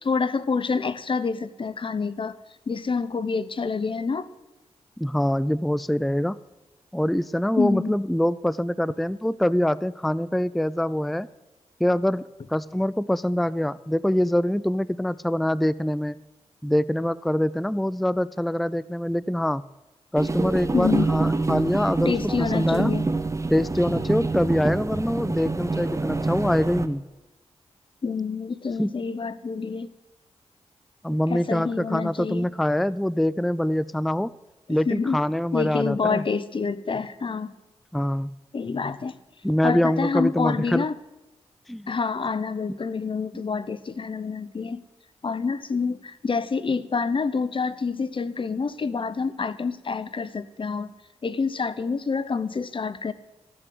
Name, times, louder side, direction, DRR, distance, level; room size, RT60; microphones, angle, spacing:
voice 1, 0.0-2.4 2.7-4.3 7.6-8.0 20.7-21.1 22.1-23.1 28.0-29.9 31.3-32.5 34.9-35.2 35.5-37.5 38.5-39.1 39.6-40.9 41.9-44.8 45.2-50.9 51.2-53.1, left 5 dB, 45° left, 16 dB, 0.8 m, -27 dB
voice 2, 5.0-6.4 6.9-11.3 11.8-16.2 16.6-19.6 20.1-22.9 23.5-27.0 28.8-28.9 31.0-34.3 34.7-36.2 37.9-38.3 39.4-40.9 41.7-41.9 42.7-42.8, left 1 dB, ahead, 19 dB, 0.4 m, -24 dB
sound 1, 20.2-26.9, right 3 dB, 25° right, 0.9 m, -26 dB
14.0 x 7.9 x 7.7 m, 1.0 s
cardioid pair, 50°, 12 cm